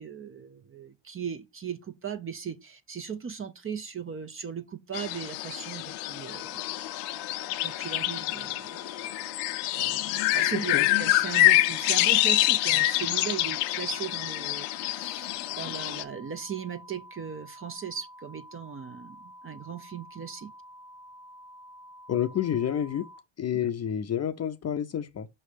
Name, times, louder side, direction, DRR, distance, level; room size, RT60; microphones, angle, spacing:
voice 1, 0.0-6.7 7.6-8.7 9.2-9.3 9.7-20.5, right 7 dB, 25° right, 0.7 m, -38 dB
sound 1, 4.9-16.0, left 16 dB, 85° left, 0.8 m, -26 dB
sound 2, 6.3-23.2, equal, 90° right, 2.1 m, -49 dB
voice 2, 10.5-10.8 22.1-23.0 23.4-25.3, left 9 dB, 30° left, 0.7 m, -29 dB
5.5 x 3.3 x 5.1 m
cardioid pair, 105°, 50 cm